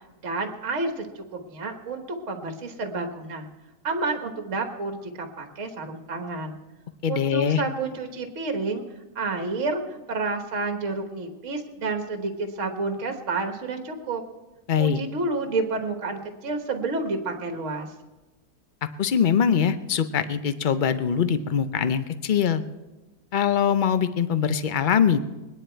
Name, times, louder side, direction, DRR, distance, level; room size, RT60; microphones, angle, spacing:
voice 1, 0.2-3.5 3.8-6.6 7.1-8.8 9.2-14.2 14.8-17.9, right 3 dB, 50° right, 5 dB, 1.7 m, -30 dB
voice 2, 7.0-7.6 14.7-15.0 19.0-22.6 23.3-25.2, left 7 dB, 65° left, 12 dB, 0.5 m, -22 dB
22.0 x 10.0 x 4.5 m, 1.1 s
omnidirectional pair, 1.7 m